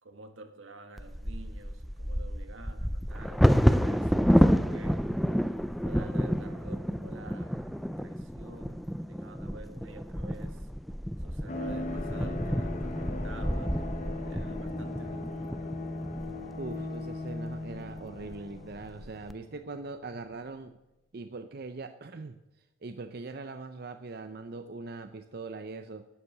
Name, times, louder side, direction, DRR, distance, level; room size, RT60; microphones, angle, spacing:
voice 1, 0.0-5.2 5.8-10.7 11.2-13.7 14.2-15.7, right 2 dB, 80° right, 7 dB, 1.5 m, -49 dB
Bird vocalization bird call bird song / Wind / Thunder, 1.0-16.9 17.5-17.6 17.9-18.3 18.8-19.3, equal, ahead, 0.4 m, -29 dB
sound 1, 11.5-20.0 20.2-20.4, left 2 dB, 40° left, 0.9 m, -38 dB
voice 2, 16.6-20.8 21.1-26.1, right 3 dB, 50° right, 9 dB, 0.6 m, -41 dB
11.5 x 9.8 x 6.6 m, 0.95 s
head